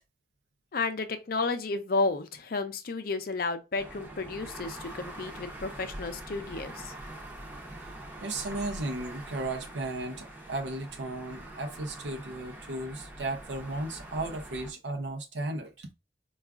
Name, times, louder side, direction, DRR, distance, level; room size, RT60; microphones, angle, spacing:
voice 1, 0.7-6.9, left 3 dB, 55° left, 0.5 m, -32 dB
sound 1, 3.8-14.7, right 1 dB, 10° right, 0.7 m, -44 dB
voice 2, 8.2-15.9, right 2 dB, 85° right, 0.6 m, -35 dB
4.6 x 2.4 x 2.3 m
head